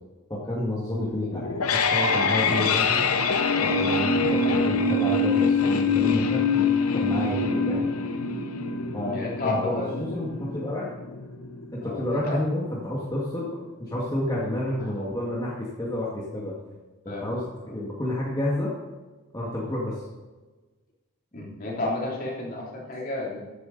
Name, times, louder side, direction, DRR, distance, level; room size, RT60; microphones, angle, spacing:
voice 1, 0.3-3.1 3.6-6.7 6.9-7.9 8.9-9.2 9.4-10.9 11.7-16.6 17.1-18.7 19.3-20.0, left 1 dB, 15° left, -5 dB, 2.0 m, -30 dB
sound 1, 1.3-12.3, left 4 dB, 85° left, 1.0 m, -24 dB
voice 2, 7.1-7.7 8.7-10.0 11.8-12.4 17.1-17.4 21.3-23.4, left 2 dB, 40° left, -3 dB, 3.2 m, -32 dB
14.5 x 9.4 x 4.1 m, 1.2 s
head